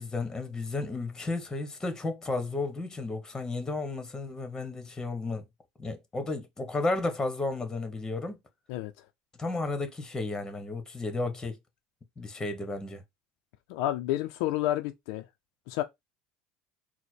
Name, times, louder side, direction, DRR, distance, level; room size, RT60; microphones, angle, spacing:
voice 1, 0.0-5.4 5.8-8.4 9.4-11.6 12.2-13.0, left 2 dB, 15° left, 1.2 m, -33 dB
voice 2, 13.7-15.2 15.7-15.8, left 14 dB, 75° left, 0.5 m, -30 dB
4.1 x 2.2 x 4.5 m
supercardioid pair, 100°, 3 cm